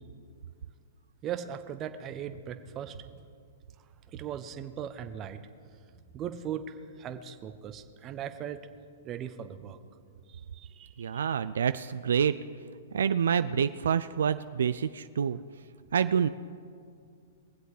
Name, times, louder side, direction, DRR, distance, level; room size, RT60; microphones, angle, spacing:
voice 1, 1.2-3.2 4.1-5.4 6.1-8.7 9.0-9.8 10.3-11.3, right 9 dB, 30° right, 9 dB, 0.9 m, -39 dB
voice 2, 11.0-12.3 12.9-15.4 15.9-16.3, right 7 dB, 75° right, 12 dB, 0.4 m, -27 dB
22.0 x 7.9 x 4.9 m, 2.2 s
hypercardioid pair, 125°, 0 cm